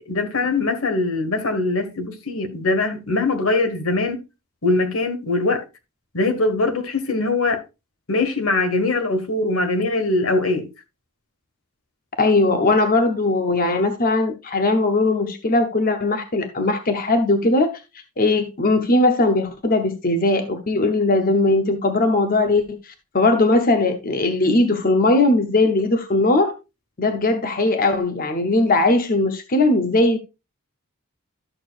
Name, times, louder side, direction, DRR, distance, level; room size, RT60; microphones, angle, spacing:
voice 1, 0.1-4.2 4.6-5.6 6.1-7.6 8.1-10.7, left 2 dB, 80° left, 1.6 m, -22 dB
voice 2, 12.2-17.7 18.2-26.5 27.0-30.2, left 2 dB, 40° left, 0.8 m, -19 dB
13.0 x 6.7 x 2.4 m
head